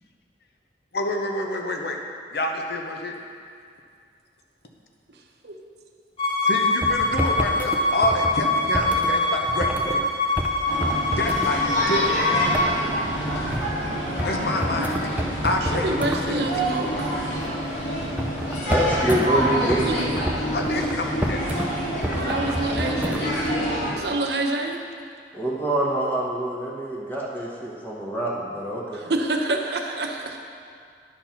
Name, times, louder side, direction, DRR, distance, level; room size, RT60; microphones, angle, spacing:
voice 1, 0.9-2.0 2.3-3.2 6.4-10.1 11.1-12.6 14.2-16.8 20.5-21.4, left 1 dB, 60° left, 2 dB, 0.9 m, -28 dB
Bowed string instrument, 6.2-12.7, left 2 dB, 30° left, 1.5 m, -24 dB
sound 1, 6.8-10.0 10.4-10.5 10.8-12.1 12.5-13.7 14.2-14.3 14.6-16.2 18.0-21.7 22.0-23.5, equal, 10° right, 0.5 m, -29 dB
sound 2, 10.7-23.9, equal, 85° left, 2.2 m, -27 dB
voice 2, 15.6-17.1 19.8-20.2 22.1-23.4 24.0-24.8 28.9-30.4, right 2 dB, 65° right, 2 dB, 0.8 m, -27 dB
voice 3, 18.6-19.9 25.3-29.1, right 1 dB, 10° left, -4 dB, 1.1 m, -26 dB
10.5 x 4.4 x 5.8 m, 2.2 s
head